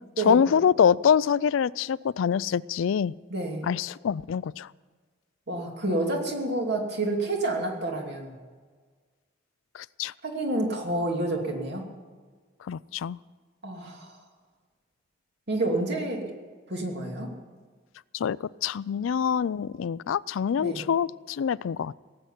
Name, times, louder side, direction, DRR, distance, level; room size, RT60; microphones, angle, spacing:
voice 1, 0.2-3.1 3.6-4.7 9.7-10.1 12.7-13.2 18.1-18.4 18.6-21.9, left 7 dB, 80° left, 21 dB, 0.4 m, -25 dB
voice 2, 3.3-3.6 5.5-8.3 10.2-11.9 13.6-14.1 15.5-16.3 16.7-17.3 20.5-20.8, right 2 dB, 60° right, 1 dB, 2.7 m, -29 dB
18.0 x 7.9 x 10.0 m, 1.5 s
head